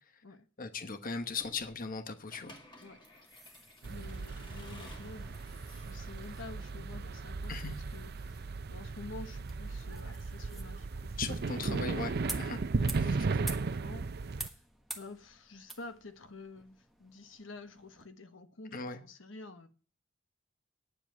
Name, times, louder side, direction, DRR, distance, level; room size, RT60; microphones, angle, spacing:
voice 1, 0.6-2.6 7.5-7.7 11.2-12.6 18.7-19.0, left 4 dB, 45° left, 1.1 m, -38 dB
sound 1, 1.2-18.1, right 1 dB, ahead, 1.3 m, -51 dB
Accelerating revving vroom / Mechanisms, 2.3-7.2, left 1 dB, 25° left, 2.0 m, -55 dB
voice 2, 2.8-12.4 12.7-14.6 14.9-19.7, left 3 dB, 75° left, 1.2 m, -50 dB
sound 2, 3.8-14.5, right 4 dB, 55° right, 0.5 m, -36 dB
9.9 x 7.5 x 9.3 m
head